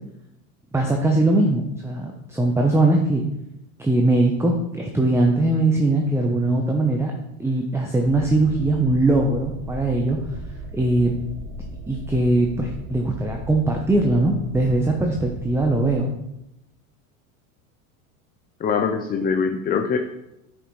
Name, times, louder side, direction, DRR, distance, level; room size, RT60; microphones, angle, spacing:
voice 1, 0.7-3.2 3.8-7.1 7.4-10.2 10.7-11.2 11.9-16.1, right 2 dB, 5° right, 1 dB, 0.8 m, -21 dB
sound 1, 8.0-15.9, right 1 dB, 60° right, 1.5 m, -37 dB
voice 2, 18.6-20.0, left 6 dB, 20° left, 6 dB, 0.5 m, -23 dB
9.5 x 5.9 x 3.2 m, 0.88 s
hypercardioid pair, 100°, 42 cm